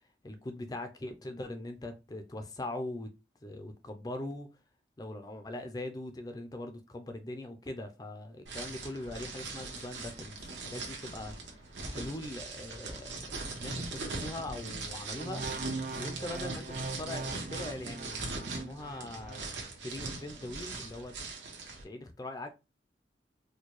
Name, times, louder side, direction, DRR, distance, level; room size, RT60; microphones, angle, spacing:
voice 1, 0.2-3.1 3.4-4.5 5.0-11.3 11.9-13.1 13.5-15.4 15.9-19.5 19.8-21.1 21.8-22.5, left 1 dB, 20° left, 0.4 m, -41 dB
sound 1, 8.5-21.8, right 3 dB, 80° right, 1.1 m, -41 dB
sound 2, 15.2-19.5 20.1-20.3, right 3 dB, 45° right, 0.4 m, -41 dB
4.4 x 2.2 x 3.0 m
head